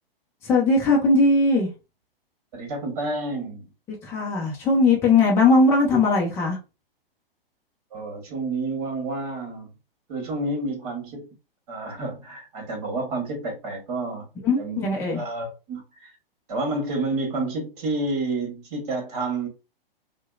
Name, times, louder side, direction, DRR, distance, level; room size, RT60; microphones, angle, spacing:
voice 1, 0.4-1.7 4.0-6.6 14.4-15.2, left 3 dB, 10° left, 0.4 m, -19 dB
voice 2, 2.5-3.7 7.9-9.7 10.1-11.3 11.7-14.3 14.6-14.8 15.2-16.1 16.5-19.5, right 2 dB, 40° right, 1.2 m, -29 dB
2.7 x 2.1 x 2.3 m
figure-of-eight pair, 115°, 29 cm